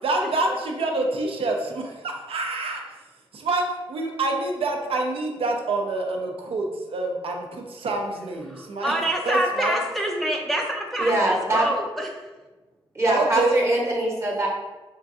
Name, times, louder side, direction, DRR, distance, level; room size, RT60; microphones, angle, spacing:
voice 1, 0.0-2.8 3.3-8.9 9.2-9.8 13.1-13.6, right 2 dB, 70° right, 2 dB, 0.5 m, -27 dB
voice 2, 8.6-12.1, right 1 dB, ahead, 0 dB, 0.4 m, -26 dB
voice 3, 11.0-11.7 12.9-14.5, right 1 dB, 25° right, -2 dB, 0.9 m, -22 dB
3.7 x 2.3 x 2.6 m, 1.2 s
cardioid pair, 65°, 10 cm